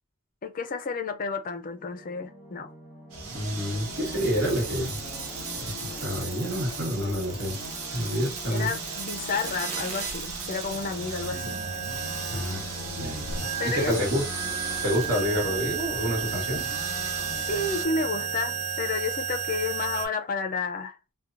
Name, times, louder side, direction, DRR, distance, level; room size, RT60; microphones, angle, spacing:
voice 1, 0.4-2.7 8.5-11.6 13.6-14.2 17.5-21.0, left 4 dB, 40° left, 0.4 m, -31 dB
sound 1, 1.6-19.0, left 3 dB, 5° right, 1.2 m, -46 dB
sound 2, 3.1-17.8, right 3 dB, 75° right, 0.8 m, -38 dB
voice 2, 3.3-5.0 6.0-7.6 7.9-8.7 12.3-12.7 12.9-13.5 13.7-14.2 14.8-16.7, equal, 55° right, 1.4 m, -28 dB
sound 3, 3.8-20.1, right 7 dB, 30° right, 0.5 m, -34 dB
2.9 x 2.2 x 2.4 m
head